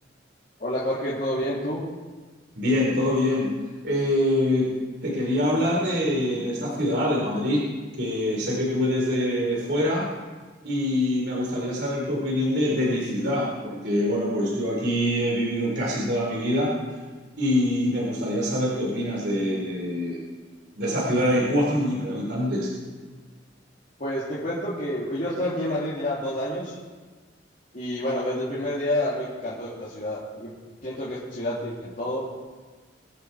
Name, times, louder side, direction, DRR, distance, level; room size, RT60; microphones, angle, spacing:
voice 1, 0.6-1.8 24.0-26.8 27.7-30.5 30.8-32.3, left 1 dB, 45° left, -8 dB, 2.8 m, -29 dB
voice 2, 2.6-3.5 3.8-4.7 5.0-7.7 8.0-10.0 10.6-16.7 17.4-20.2 20.8-22.7, left 1 dB, 65° right, -4 dB, 4.0 m, -24 dB
23.0 x 7.8 x 4.8 m, 1.4 s
head